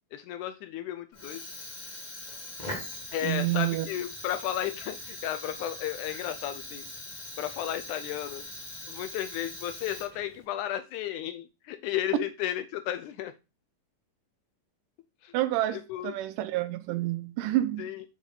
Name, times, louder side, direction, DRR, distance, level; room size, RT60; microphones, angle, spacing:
voice 1, 0.1-1.4 3.1-6.9 7.4-8.5 8.9-13.3 15.2-15.3 15.7-16.1 17.8-18.0, left 11 dB, 80° left, 1.9 m, -33 dB
Fire, 1.1-10.4, left 1 dB, 25° left, 0.9 m, -42 dB
voice 2, 3.2-3.9 15.3-17.9, right 15 dB, 80° right, 2.1 m, -29 dB
6.7 x 6.4 x 3.9 m
omnidirectional pair, 3.9 m